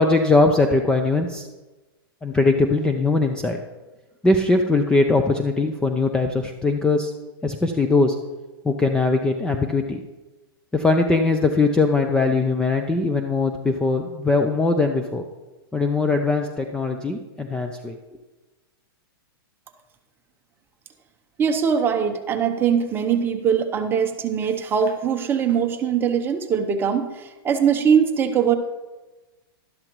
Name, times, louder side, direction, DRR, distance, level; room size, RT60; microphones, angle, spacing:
voice 1, 0.0-1.5 2.2-3.6 4.2-7.1 7.4-8.1 8.6-10.0 10.7-15.2 15.7-18.0, left 3 dB, 5° left, 5 dB, 0.5 m, -20 dB
voice 2, 21.4-28.5, right 7 dB, 15° right, 6 dB, 0.8 m, -21 dB
12.0 x 11.5 x 3.1 m, 1.2 s
hypercardioid pair, 145°, 13 cm